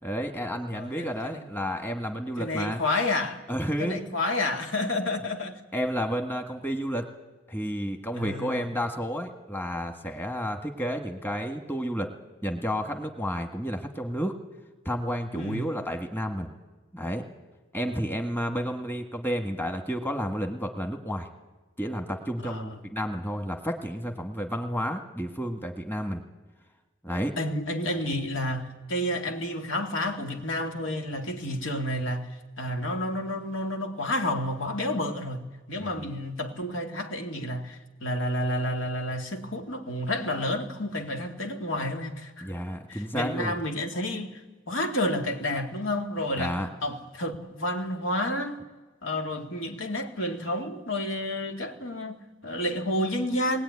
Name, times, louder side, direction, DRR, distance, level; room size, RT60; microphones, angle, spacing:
voice 1, 0.0-2.8 3.5-4.0 4.9-5.1 5.7-7.1 7.5-12.1 12.4-14.3 14.8-16.5 16.9-17.2 17.7-21.3 21.8-26.2 27.0-27.3 35.7-36.1 42.4-43.6 46.4-46.7, equal, 10° left, 1.6 m, -31 dB
voice 2, 0.7-1.4 2.4-3.4 3.8-5.6 8.1-8.6 15.3-15.7 17.8-18.0 22.4-22.8 27.4-32.3 32.6-42.5 42.9-44.4 44.7-48.6 49.0-53.6, left 1 dB, 85° left, 2.4 m, -30 dB
21.5 x 20.5 x 9.7 m
head